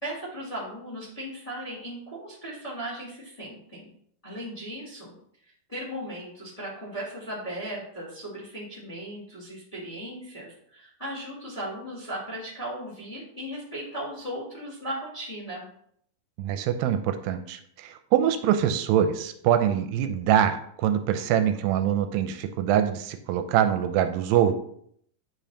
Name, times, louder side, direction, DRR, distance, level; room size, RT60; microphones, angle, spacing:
voice 1, 0.0-3.9 4.2-5.1 5.4-15.7, right 1 dB, 10° left, -7 dB, 2.0 m, -37 dB
voice 2, 16.4-24.6, right 10 dB, 85° right, 8 dB, 2.3 m, -24 dB
9.2 x 5.1 x 2.8 m, 0.66 s
omnidirectional pair, 4.2 m